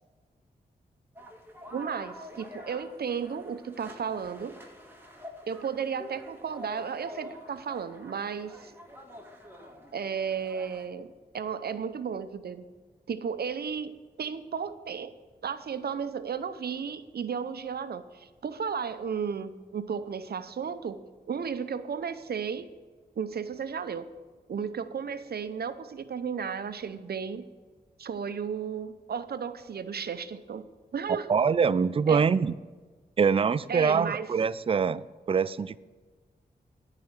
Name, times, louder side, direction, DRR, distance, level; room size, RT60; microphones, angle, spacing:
sound 1, 1.2-10.9, left 1 dB, 10° right, 1.7 m, -47 dB
voice 1, 1.7-4.6 5.5-8.7 9.9-12.6 13.1-15.1 15.4-21.0 21.3-22.7 23.2-24.0 24.5-27.4 28.0-30.6 30.9-31.3 32.1-32.3 33.7-34.3, right 6 dB, 70° right, 12 dB, 0.7 m, -34 dB
voice 2, 31.3-32.5 33.2-35.8, right 6 dB, 35° right, 17 dB, 0.4 m, -24 dB
10.0 x 4.9 x 8.0 m, 1.4 s
cardioid pair, 50°, 17 cm